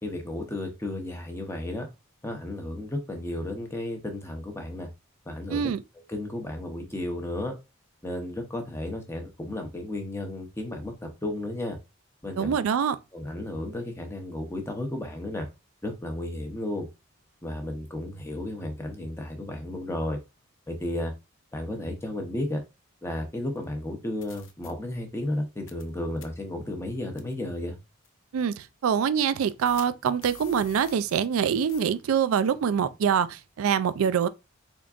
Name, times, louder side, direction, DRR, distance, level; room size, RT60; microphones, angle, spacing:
voice 1, 0.0-1.9 2.2-4.9 5.3-5.7 6.1-7.5 8.0-11.8 12.2-12.6 13.1-15.5 15.8-16.9 17.4-20.2 20.7-21.1 21.5-22.6 23.0-27.8, left 1 dB, 10° left, 0.6 m, -33 dB
voice 2, 5.5-5.8 12.4-13.0 28.3-34.3, right 7 dB, 80° right, 0.3 m, -25 dB
sound 1, 23.6-23.7 24.2-24.7 25.7-25.9 26.2-26.3 27.2-27.3 28.0-28.1 29.6-31.4 31.7-31.9, left 6 dB, 60° left, 0.6 m, -46 dB
3.8 x 3.6 x 2.4 m
head